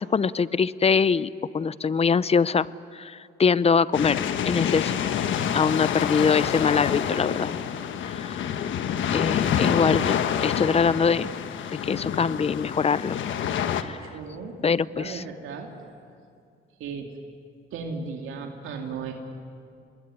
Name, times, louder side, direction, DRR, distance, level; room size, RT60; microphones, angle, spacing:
voice 1, 0.0-2.7 2.9-4.9 5.5-7.5 8.1-8.4 9.1-11.3 11.7-13.2 13.7-14.0 14.6-15.2, left 5 dB, 30° left, 18 dB, 0.7 m, -23 dB
sound 1, 3.9-13.8, left 8 dB, 75° left, 1.4 m, -27 dB
voice 2, 14.0-14.5 14.9-15.7 16.8-17.1 17.7-19.1, right 5 dB, 85° right, 2 dB, 2.6 m, -35 dB
26.0 x 21.0 x 9.7 m, 2.3 s
cardioid pair, 90°, 20 cm